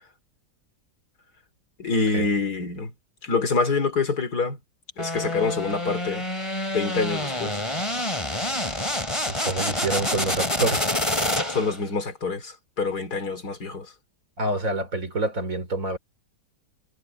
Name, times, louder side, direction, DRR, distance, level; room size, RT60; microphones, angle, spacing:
voice 1, 1.8-2.9 3.2-4.6 5.0-6.3 6.7-7.7 11.5-13.9, left 4 dB, 80° left, 3.6 m, -26 dB
sound 1, 5.0-11.8, left 1 dB, 20° left, 3.8 m, -27 dB
voice 2, 9.3-10.9 14.4-16.0, right 2 dB, 55° right, 4.2 m, -27 dB
omnidirectional pair, 1.7 m